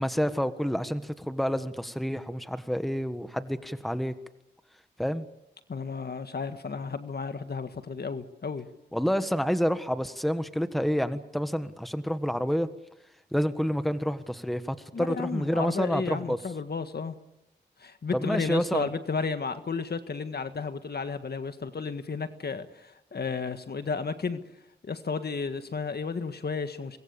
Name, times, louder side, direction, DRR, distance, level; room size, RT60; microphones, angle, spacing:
voice 1, 0.0-4.1 5.0-5.3 8.9-12.7 13.3-16.4 18.1-18.9, equal, ahead, 10 dB, 1.5 m, -28 dB
voice 2, 5.7-8.7 14.9-17.2 17.8-24.4 24.8-27.0, left 5 dB, 60° left, 9 dB, 1.7 m, -33 dB
25.5 x 21.0 x 7.1 m, 0.89 s
cardioid pair, 55°, 18 cm